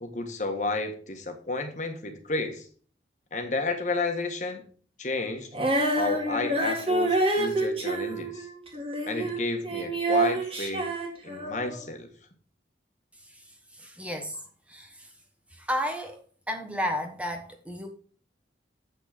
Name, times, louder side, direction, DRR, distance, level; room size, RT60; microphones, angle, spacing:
voice 1, 0.0-2.6 3.3-4.6 5.0-5.5 6.0-8.5 9.1-10.9 11.2-12.1, left 3 dB, 40° left, 5 dB, 1.4 m, -31 dB
Female singing, 5.5-9.4 9.6-11.8, right 2 dB, 30° right, 2.1 m, -27 dB
voice 2, 13.8-14.4 14.7-15.1 15.6-16.2 16.5-17.9, equal, 5° right, 4 dB, 1.1 m, -32 dB
8.2 x 6.2 x 5.0 m, 0.42 s
head